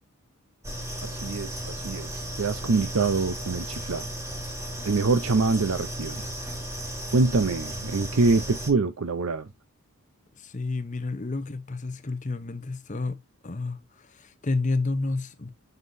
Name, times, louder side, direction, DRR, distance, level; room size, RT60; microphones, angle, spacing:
sound 1, 0.6-8.7, right 1 dB, 15° right, 1.9 m, -35 dB
voice 1, 1.0-4.1 4.9-6.2 7.1-9.5, right 3 dB, 65° right, 0.6 m, -25 dB
voice 2, 10.4-13.2 13.4-15.5, left 3 dB, 35° left, 0.7 m, -30 dB
8.1 x 5.4 x 2.6 m
head